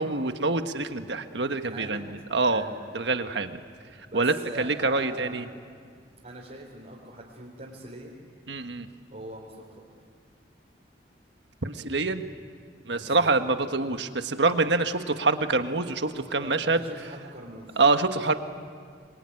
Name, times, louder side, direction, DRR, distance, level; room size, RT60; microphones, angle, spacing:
voice 1, 0.0-2.6 2.9-3.6 4.1-5.4 8.5-8.9 11.6-12.2 12.9-16.8 17.8-18.3, right 3 dB, 70° right, 8 dB, 1.5 m, -25 dB
voice 2, 1.6-2.1 2.4-2.8 4.0-5.4 6.2-8.2 9.1-9.8 12.9-13.3 16.4-17.8, right 1 dB, 45° right, -5 dB, 3.9 m, -42 dB
27.0 x 22.5 x 9.8 m, 2.1 s
head